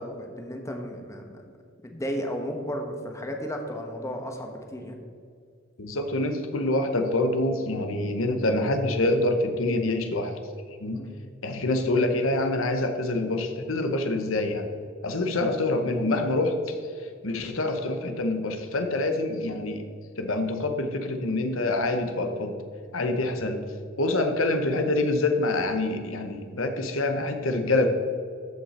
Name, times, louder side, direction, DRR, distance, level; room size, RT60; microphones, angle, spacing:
voice 1, 0.0-1.5 1.8-5.0 10.9-11.1, equal, 15° left, 3 dB, 1.1 m, -34 dB
voice 2, 5.8-10.3 10.8-11.0 11.4-14.7 15.0-16.8 17.2-19.8 20.2-22.6 22.9-23.6 24.0-27.9, left 2 dB, 80° left, 6 dB, 1.0 m, -26 dB
13.5 x 5.8 x 4.3 m, 2.3 s
head